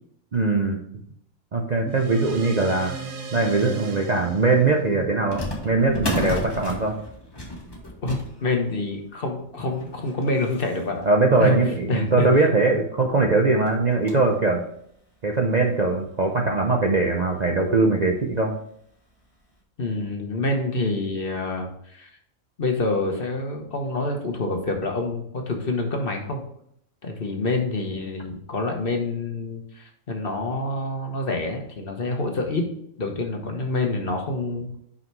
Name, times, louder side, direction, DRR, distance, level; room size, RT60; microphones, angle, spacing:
voice 1, 0.3-0.8 1.5-2.9 3.3-6.9 11.0-14.6 15.2-18.5, right 3 dB, 40° right, 1 dB, 0.7 m, -21 dB
sound 1, 1.9-6.7, right 5 dB, 75° right, 1.4 m, -37 dB
sound 2, 5.3-12.2 12.8-12.9 13.1-13.3 13.7-14.4 14.9-15.0 15.8-15.9 16.3-16.4 17.8-18.1 18.5-18.6 19.2-19.4, left 1 dB, 20° left, 1.4 m, -34 dB
voice 2, 8.0-11.1 11.4-11.6 11.9-12.3 19.8-22.1 22.6-26.4 27.0-32.7 33.0-34.8, left 2 dB, 45° left, 3 dB, 1.2 m, -27 dB
5.6 x 5.5 x 4.6 m, 0.70 s
omnidirectional pair, 1.4 m